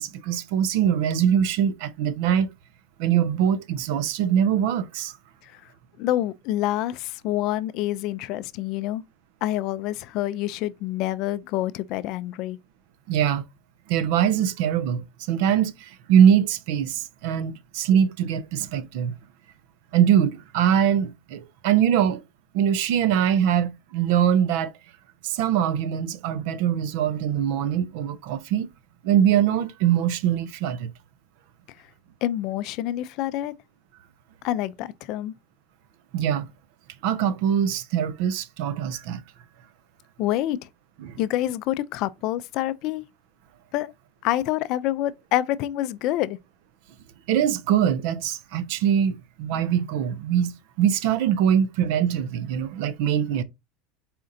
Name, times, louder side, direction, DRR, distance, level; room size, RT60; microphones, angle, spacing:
voice 1, 0.0-2.5 3.0-5.1 13.1-13.4 13.9-19.1 19.9-22.2 22.5-24.7 25.2-28.7 29.0-30.9 36.1-36.5 37.0-39.2 41.0-41.2 47.3-53.4, right 9 dB, 70° right, 0.5 m, -22 dB
voice 2, 6.0-9.0 9.4-12.6 32.2-33.5 34.4-35.3 40.2-40.7 41.2-43.0 43.7-43.9 44.2-46.4, left 14 dB, 55° left, 0.3 m, -27 dB
4.2 x 3.7 x 2.5 m
supercardioid pair, 125°, 0 cm